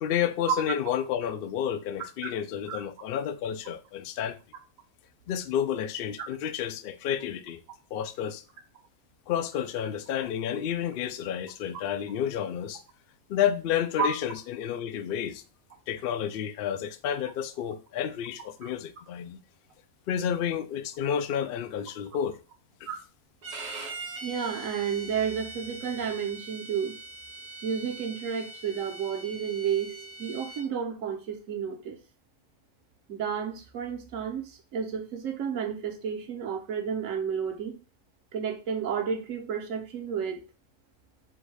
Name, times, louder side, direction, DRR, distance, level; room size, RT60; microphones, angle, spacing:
voice 1, 0.0-4.4 5.3-7.6 7.9-8.4 9.3-12.8 13.3-15.4 15.9-19.4 20.1-22.4 22.8-22.9, left 9 dB, 80° left, 0.5 m, -30 dB
Bowed string instrument, 23.4-30.7, right 2 dB, 50° right, 0.5 m, -42 dB
voice 2, 24.2-27.0 27.6-32.0 33.1-37.7 38.3-40.4, right 7 dB, 70° right, 1.2 m, -31 dB
3.6 x 2.7 x 4.7 m
omnidirectional pair, 1.5 m